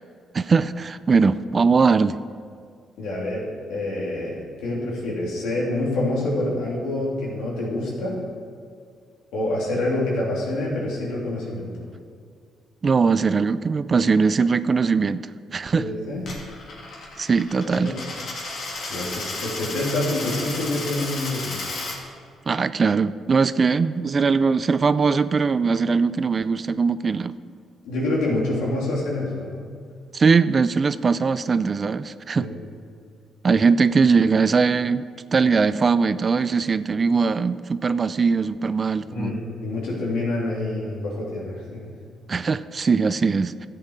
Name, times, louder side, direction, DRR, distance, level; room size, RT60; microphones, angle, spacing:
voice 1, 0.3-2.2 12.8-15.2 15.5-15.9 17.2-18.0 22.5-27.3 30.1-32.5 33.4-35.0 35.3-39.4 42.3-43.7, right 5 dB, 40° right, 15 dB, 0.4 m, -20 dB
voice 2, 3.0-8.2 9.3-11.9 15.8-16.3 17.8-18.0 18.9-21.6 27.8-29.7 32.3-32.5 39.1-41.9, left 2 dB, 90° left, -4 dB, 3.1 m, -27 dB
Coin (dropping), 16.2-22.0, left 2 dB, 60° left, 2.4 m, -33 dB
13.0 x 7.9 x 4.8 m, 2.2 s
cardioid pair, 90°, 0 cm